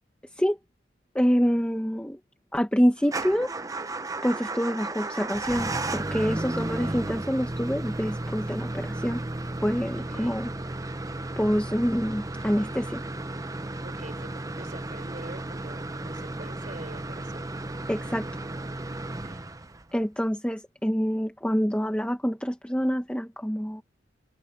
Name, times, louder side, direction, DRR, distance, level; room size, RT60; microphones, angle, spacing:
voice 1, 1.1-2.2 2.5-3.5 4.2-9.2 9.6-10.5 11.4-13.0 17.9-18.3 19.9-23.8, equal, 5° left, 1.2 m, -26 dB
Motor vehicle (road) / Engine starting / Idling, 3.0-20.0, right 2 dB, 20° right, 0.8 m, -34 dB
voice 2, 6.8-7.1 10.0-10.4 13.8-14.3 14.6-17.5 19.2-19.4, right 2 dB, 45° right, 5.6 m, -45 dB
open air
head